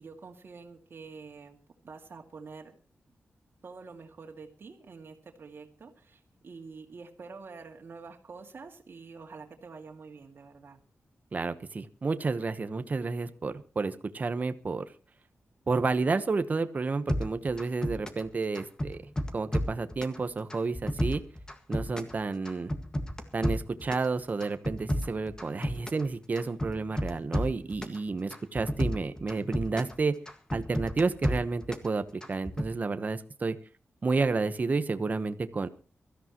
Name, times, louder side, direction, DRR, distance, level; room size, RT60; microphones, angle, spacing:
voice 1, 0.0-1.6 1.8-2.7 3.6-10.8, right 4 dB, 55° right, 1 dB, 2.2 m, -47 dB
voice 2, 11.3-14.8 15.7-19.0 19.3-21.2 21.7-22.7 23.3-30.1 30.5-33.6 34.0-35.7, right 4 dB, 35° right, 10 dB, 1.0 m, -30 dB
sound 1, 17.1-18.3 18.5-20.2 20.5-22.2 22.4-24.1 24.4-26.1 26.4-28.0 28.3-30.0 30.3-31.9 32.2-32.7, equal, 15° left, 1.8 m, -31 dB
23.5 x 13.5 x 3.0 m, 0.35 s
wide cardioid pair, 140°, 5 cm